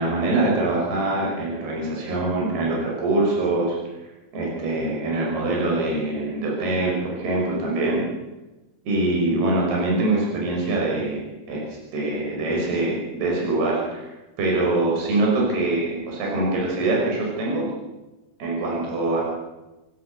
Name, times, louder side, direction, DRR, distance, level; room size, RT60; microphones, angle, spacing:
voice 1, 0.0-3.8 4.3-8.0 8.9-11.2 11.5-11.6 11.9-14.1 14.4-17.7 18.4-19.2, right 2 dB, 70° right, -2 dB, 7.5 m, -23 dB
28.0 x 17.5 x 6.8 m, 1.1 s
omnidirectional pair, 4.7 m